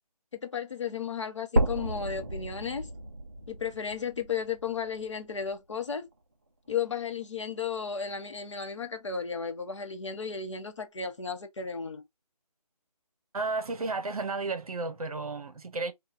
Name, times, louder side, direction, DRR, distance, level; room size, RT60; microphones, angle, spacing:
voice 1, 0.3-2.9 3.5-6.1 6.7-12.0, left 6 dB, 50° left, 0.8 m, -34 dB
sound 1, 1.6-5.6 6.1-6.2 6.8-6.9 7.2-7.3 8.1-8.2, right 1 dB, 25° right, 0.4 m, -32 dB
voice 2, 13.3-15.9, right 3 dB, 65° right, 0.8 m, -33 dB
4.0 x 2.3 x 2.5 m
figure-of-eight pair, 165°, 20 cm